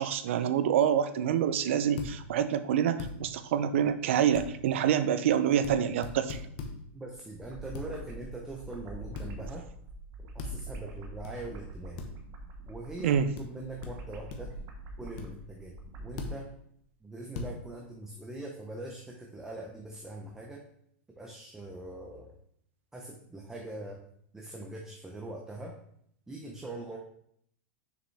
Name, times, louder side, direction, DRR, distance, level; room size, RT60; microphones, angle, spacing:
voice 1, 0.0-6.4 13.0-13.3, right 9 dB, 70° right, 12 dB, 0.4 m, -26 dB
sound 1, 2.0-2.1 3.0-3.1 4.3-4.5 5.6-5.8 6.0-6.7 7.7-7.9 9.2-9.3 10.4-10.6 11.2-11.3 12.0-12.1 13.4-13.5 13.8-13.9 14.3-14.6 15.2-15.3 16.2-16.4 17.3-17.5, left 4 dB, 45° left, 1.0 m, -38 dB
voice 2, 6.9-9.7 10.3-12.0 12.7-14.6 15.0-15.7 16.0-16.5 17.0-20.6 21.2-22.3 22.9-24.0 24.3-25.7 26.3-27.0, right 2 dB, 5° right, -1 dB, 0.7 m, -42 dB
sound 2, 7.3-16.3, right 2 dB, 40° right, 1.1 m, -45 dB
6.5 x 4.9 x 3.3 m, 0.69 s
supercardioid pair, 150°, 7 cm